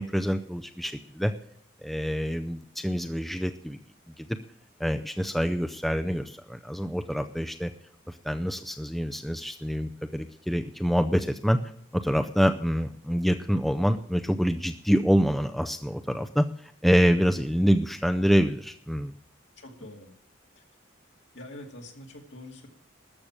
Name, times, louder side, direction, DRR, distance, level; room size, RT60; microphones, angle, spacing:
voice 1, 0.0-1.3 1.8-3.8 4.2-4.4 4.8-7.7 8.1-11.6 11.9-19.1, equal, ahead, 6 dB, 0.5 m, -26 dB
voice 2, 19.6-20.1 20.6-20.7 21.3-22.7, left 1 dB, 65° left, 2 dB, 2.4 m, -44 dB
13.5 x 6.5 x 8.8 m, 0.64 s
head